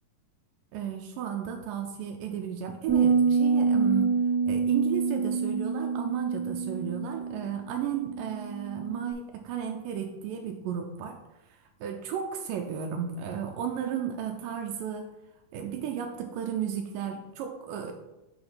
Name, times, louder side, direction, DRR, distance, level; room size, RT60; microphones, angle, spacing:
voice 1, 0.7-4.1 4.5-11.2 11.5-15.1 15.5-17.9, right 8 dB, 90° right, 3 dB, 2.2 m, -34 dB
sound 1, 2.9-9.1, right 5 dB, 40° right, 1.7 m, -27 dB
5.7 x 4.9 x 5.4 m, 0.97 s
omnidirectional pair, 3.8 m